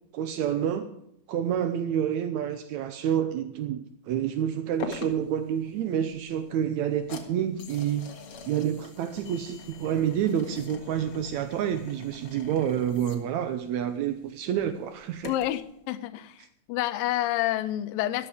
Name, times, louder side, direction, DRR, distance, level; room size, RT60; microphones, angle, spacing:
voice 1, 0.1-0.9 1.3-8.1 8.4-15.3, right 9 dB, 80° right, 1.6 m, -28 dB
sound 1, 4.8-15.7, left 5 dB, 50° left, 2.0 m, -45 dB
voice 2, 15.3-16.4 16.7-18.3, left 14 dB, 80° left, 2.4 m, -28 dB
13.5 x 12.5 x 5.0 m
omnidirectional pair, 4.3 m